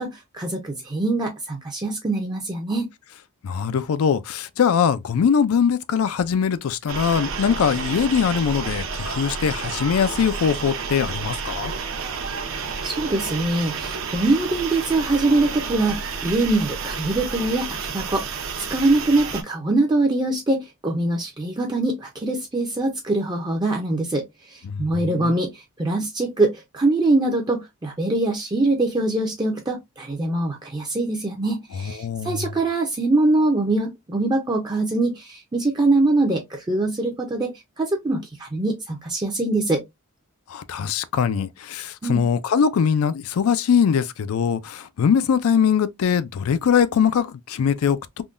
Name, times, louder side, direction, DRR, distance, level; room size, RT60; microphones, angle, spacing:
voice 1, 0.0-2.9 12.8-18.4 18.7-24.2 24.5-39.8 42.0-42.2, right 2 dB, 20° right, 0.5 m, -23 dB
voice 2, 3.4-11.7 24.6-25.4 32.0-32.5 40.5-48.2, left 7 dB, 80° left, 0.4 m, -22 dB
sound 1, 6.9-19.4, right 5 dB, 65° right, 0.7 m, -30 dB
3.6 x 2.2 x 2.4 m
head